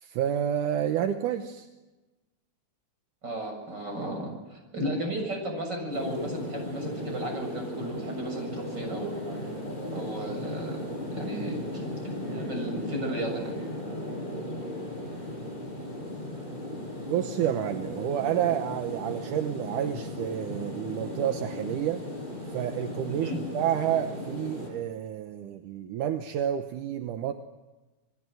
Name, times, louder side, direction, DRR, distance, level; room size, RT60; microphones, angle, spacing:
voice 1, 0.0-1.7 17.1-22.0 22.5-23.3 23.5-27.3, right 10 dB, 75° right, 7 dB, 2.6 m, -29 dB
voice 2, 3.2-9.2 9.9-10.8 11.1-11.9 12.3-13.5 23.2-23.4, right 1 dB, 30° right, 2 dB, 8.1 m, -34 dB
sound 1, 5.9-24.7, left 1 dB, 15° left, 7.9 m, -36 dB
29.0 x 21.0 x 7.8 m, 1.1 s
omnidirectional pair, 3.7 m